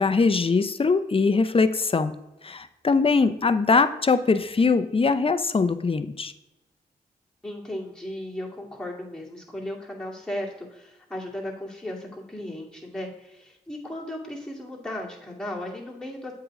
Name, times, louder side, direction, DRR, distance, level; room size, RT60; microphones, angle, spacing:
voice 1, 0.0-2.1 2.4-6.3, left 4 dB, 35° left, 11 dB, 0.6 m, -22 dB
voice 2, 7.4-16.4, left 1 dB, 5° left, -3 dB, 2.2 m, -36 dB
7.8 x 3.8 x 4.9 m, 0.96 s
cardioid pair, 45°, 17 cm